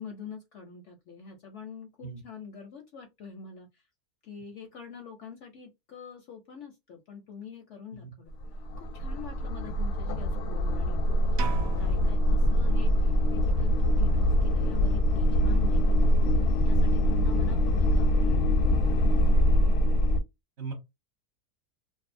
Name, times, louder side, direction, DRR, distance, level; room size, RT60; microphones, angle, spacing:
voice 1, 0.0-3.8 4.2-8.3 8.8-19.6, left 6 dB, 65° left, 0.7 m, -45 dB
voice 2, 2.0-2.2 7.9-8.1 11.8-12.0 12.6-12.8 20.6-20.7, right 4 dB, 50° right, 1.1 m, -40 dB
sound 1, 8.3-20.2, equal, 85° left, 1.1 m, -24 dB
sound 2, 11.4-13.3, right 7 dB, 85° right, 0.5 m, -41 dB
2.7 x 2.3 x 2.5 m
omnidirectional pair, 1.7 m